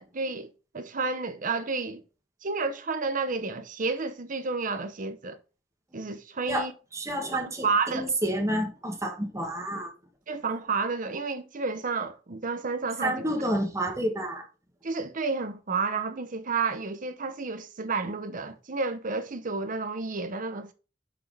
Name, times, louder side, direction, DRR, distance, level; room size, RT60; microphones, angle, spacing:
voice 1, 0.0-2.0 2.4-5.4 5.9-6.7 7.4-8.1 10.3-13.2 14.8-20.7, right 4 dB, 45° right, 0.8 m, -31 dB
voice 2, 6.9-9.9 13.0-14.4, right 1 dB, 15° right, 1.5 m, -29 dB
6.1 x 4.6 x 5.3 m
head